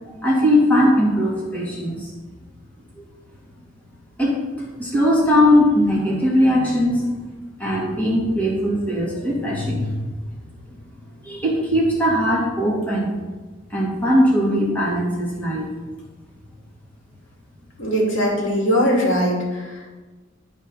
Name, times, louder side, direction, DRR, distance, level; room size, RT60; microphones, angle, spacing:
voice 1, 0.1-2.1 4.2-4.4 4.8-7.1 7.6-10.1 11.2-13.2 13.7-15.7, equal, 10° left, -6 dB, 2.5 m, -19 dB
voice 2, 17.8-19.7, equal, 80° left, -3 dB, 2.7 m, -20 dB
12.0 x 4.4 x 5.6 m, 1.2 s
head